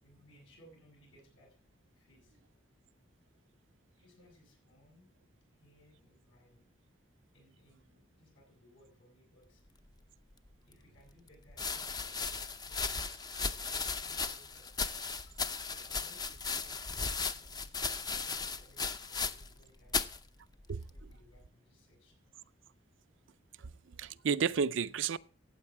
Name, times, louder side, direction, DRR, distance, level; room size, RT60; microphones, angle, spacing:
voice 1, 0.0-1.6 1.9-2.4 4.0-5.1 5.5-6.6 7.3-9.6 10.7-12.9 13.9-14.8 15.2-15.4 15.7-20.0 20.9-22.3, equal, 75° left, 6.9 m, -64 dB
sound 1, 10.5-10.6 11.5-19.6 19.9-20.2 21.0-21.4, left 4 dB, 20° left, 0.5 m, -36 dB
voice 2, 23.6-25.2, right 6 dB, 75° right, 0.5 m, -32 dB
14.0 x 8.5 x 4.7 m
head